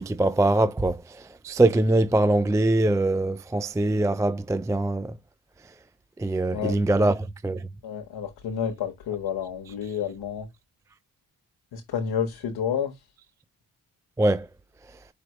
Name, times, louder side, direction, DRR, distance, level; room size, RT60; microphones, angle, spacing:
voice 1, 0.0-5.2 6.2-7.7 14.2-14.5, right 2 dB, 10° right, 0.3 m, -23 dB
voice 2, 6.5-7.1 7.8-10.5 11.7-12.9, left 8 dB, 80° left, 1.0 m, -30 dB
5.0 x 3.3 x 2.9 m
cardioid pair, 55°, 38 cm